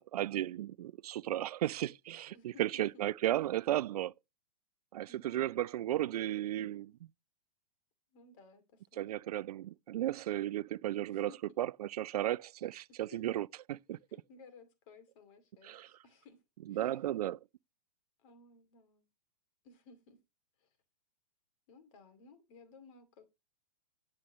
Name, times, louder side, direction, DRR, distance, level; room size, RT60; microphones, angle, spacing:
voice 1, 0.0-4.1 4.9-6.9 9.0-11.3 11.6-14.0 15.6-15.9 16.7-17.4, right 13 dB, 70° right, 0.4 m, -34 dB
voice 2, 2.3-3.1 5.1-5.6 8.1-9.3 11.1-11.4 13.1-13.4 14.1-16.4 16.7-17.1 18.2-19.1 19.6-20.2 20.6-20.8 21.7-23.2, left 4 dB, 55° left, 2.6 m, -59 dB
11.0 x 7.4 x 3.0 m
hypercardioid pair, 120°, 20 cm